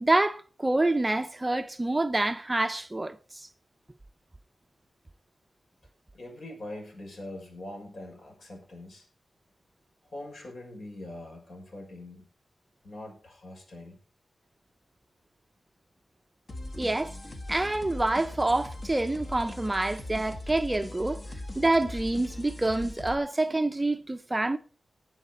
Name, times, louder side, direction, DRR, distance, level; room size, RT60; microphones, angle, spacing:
voice 1, 0.0-3.2 16.8-17.2 17.5-21.2 21.6-24.6, right 2 dB, 20° right, 0.5 m, -27 dB
voice 2, 6.1-9.0 10.1-12.3 12.8-14.0, left 1 dB, 65° left, 6.0 m, -43 dB
sound 1, 16.5-23.1, left 1 dB, 40° left, 1.4 m, -40 dB
19.5 x 7.7 x 4.1 m
wide cardioid pair, 100°, 0 cm